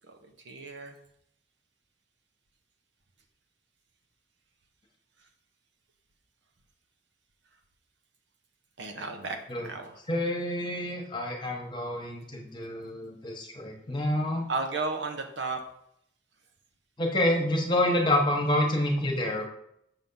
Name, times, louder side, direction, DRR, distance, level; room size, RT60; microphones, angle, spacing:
voice 1, 0.4-0.9 8.8-10.0 14.5-15.6, right 3 dB, 75° right, 5 dB, 0.9 m, -34 dB
voice 2, 10.1-14.5 17.0-19.5, left 1 dB, 25° left, 1 dB, 1.2 m, -28 dB
7.3 x 3.5 x 5.5 m, 0.73 s
head